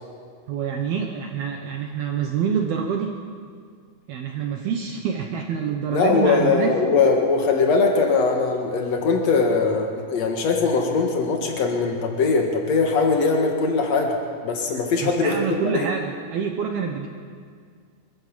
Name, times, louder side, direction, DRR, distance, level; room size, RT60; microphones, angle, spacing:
voice 1, 0.5-3.1 4.1-6.8 15.0-17.1, right 7 dB, 75° right, 3 dB, 2.3 m, -26 dB
voice 2, 5.9-14.2 14.4-15.4 15.6-15.9, left 4 dB, 80° left, 2 dB, 1.5 m, -21 dB
25.5 x 14.5 x 7.5 m, 2.1 s
omnidirectional pair, 5.9 m